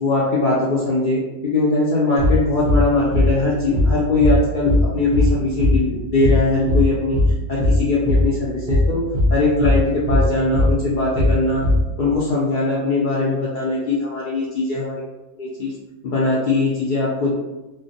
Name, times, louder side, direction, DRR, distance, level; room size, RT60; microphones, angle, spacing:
voice 1, 0.0-7.2 7.5-9.0 9.3-11.6 12.0-15.0 15.4-15.7 16.0-17.3, left 3 dB, 85° left, -7 dB, 0.4 m, -20 dB
sound 1, 2.2-2.4 2.6-2.8 3.1-3.3 3.7-3.9 4.2-4.4 4.7-4.9 5.1-5.3 5.6-5.8 6.2-6.4 6.7-6.9 7.1-7.3 7.6-7.8 8.1-8.3 8.7-8.9 9.1-9.3 9.6-9.8 10.1-10.3 10.5-10.7 11.1-11.3 11.6-11.8, left 1 dB, 40° right, 0.5 m, -17 dB
2.2 x 2.2 x 2.6 m, 1.1 s
omnidirectional pair, 1.4 m